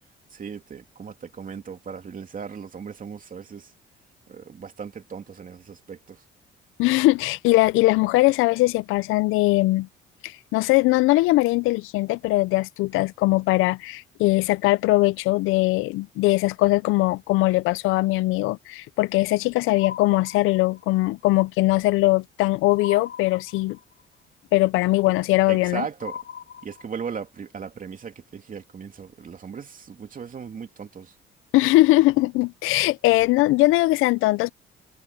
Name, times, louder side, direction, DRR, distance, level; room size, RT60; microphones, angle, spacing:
voice 1, 0.3-3.7 4.3-6.2 25.1-25.2 25.5-26.2 26.6-31.1, right 6 dB, 40° right, 2.8 m, -37 dB
voice 2, 6.8-9.9 10.2-23.8 24.5-25.8 31.5-34.5, left 19 dB, 85° left, 0.4 m, -21 dB
sound 1, 19.8-21.0 22.8-24.0 26.0-27.2, left 8 dB, 70° left, 2.4 m, -40 dB
open air
cardioid pair, 90°, 21 cm